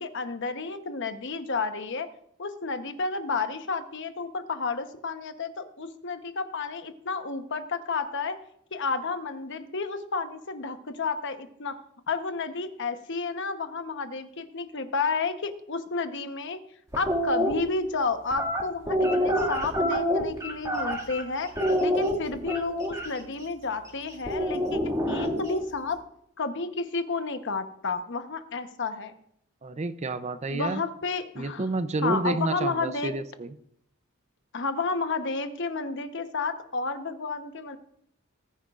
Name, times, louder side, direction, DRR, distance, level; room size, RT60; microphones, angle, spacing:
voice 1, 0.0-2.1 2.4-8.4 8.7-11.8 12.1-16.6 16.9-21.5 21.8-26.0 26.4-29.2 30.5-31.7 32.0-33.1 34.5-37.8, left 4 dB, 60° left, 8 dB, 1.0 m, -31 dB
sound 1, 16.9-17.5 18.3-21.2 21.6-23.1 24.3-25.6, equal, 15° right, 2.1 m, -26 dB
voice 2, 29.6-30.8 31.4-33.5, right 2 dB, 30° right, 12 dB, 0.6 m, -29 dB
19.5 x 9.9 x 2.5 m, 0.72 s
head